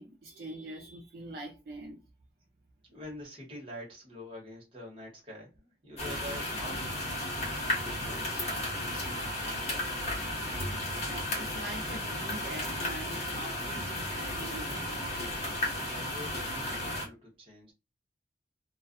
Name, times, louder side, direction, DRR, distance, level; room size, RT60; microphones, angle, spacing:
voice 1, 0.0-2.0 11.1-15.1, right 1 dB, 55° right, 0.5 m, -44 dB
voice 2, 2.9-9.9 15.8-17.7, left 1 dB, 30° right, 1.1 m, -46 dB
sound 1, 6.0-17.1, left 1 dB, 40° left, 1.0 m, -34 dB
2.3 x 2.2 x 2.5 m
head